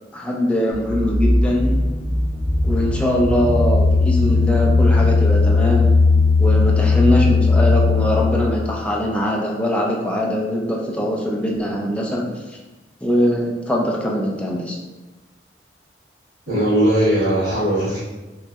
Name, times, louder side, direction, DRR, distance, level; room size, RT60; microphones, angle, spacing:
voice 1, 0.1-1.8 2.6-5.9 6.4-12.6 13.0-14.8, equal, 5° left, -2 dB, 0.3 m, -22 dB
sound 1, 0.7-8.5, left 3 dB, 40° left, 0.9 m, -17 dB
voice 2, 16.5-18.0, right 1 dB, 65° right, -15 dB, 1.3 m, -18 dB
3.0 x 2.7 x 2.3 m, 1.2 s
head